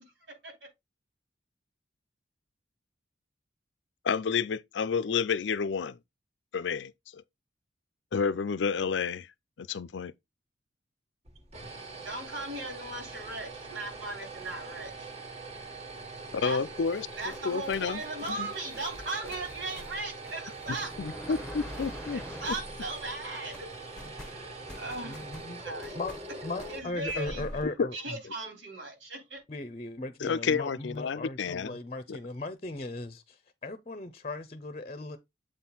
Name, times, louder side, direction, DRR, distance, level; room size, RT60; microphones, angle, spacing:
voice 1, 4.0-6.0 6.5-7.2 8.1-9.3 9.6-10.1 16.3-17.1 17.4-18.0 18.4-18.5 21.0-22.2 27.8-27.9 30.2-31.8 32.1-32.2, left 5 dB, 70° left, 0.5 m, -30 dB
sound 1, 11.3-27.5, right 3 dB, 35° right, 1.4 m, -43 dB
voice 2, 12.0-15.1 16.4-16.6 17.2-20.9 21.3-21.5 21.8-21.9 22.1-23.7 24.3-25.2 25.5-26.0 26.7-27.5 27.9-29.4, right 2 dB, 85° right, 3.5 m, -38 dB
sound 2, 16.9-23.3 23.5-27.6, left 1 dB, 5° left, 0.9 m, -46 dB
voice 3, 25.0-25.6 25.9-28.0 29.5-35.2, left 2 dB, 35° left, 0.7 m, -38 dB
7.6 x 4.4 x 3.9 m
head